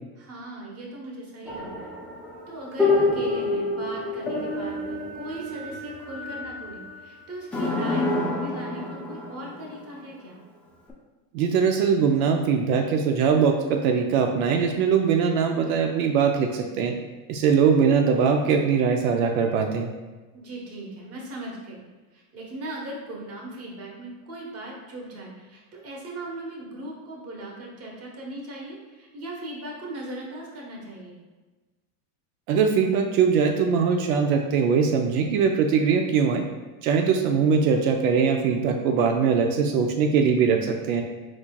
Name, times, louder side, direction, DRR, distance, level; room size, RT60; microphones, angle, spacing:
voice 1, 0.2-2.0 2.5-10.4 20.3-21.8 22.1-31.2, right 1 dB, 35° right, -2 dB, 1.2 m, -38 dB
sound 1, 1.5-6.9 7.5-9.9 10.9-11.0, left 2 dB, 5° left, 0.5 m, -28 dB
voice 2, 11.3-16.9 17.3-19.9 32.5-36.4 36.8-41.0, right 6 dB, 90° right, 4 dB, 0.6 m, -21 dB
4.6 x 4.2 x 2.3 m, 1.2 s
supercardioid pair, 135°, 41 cm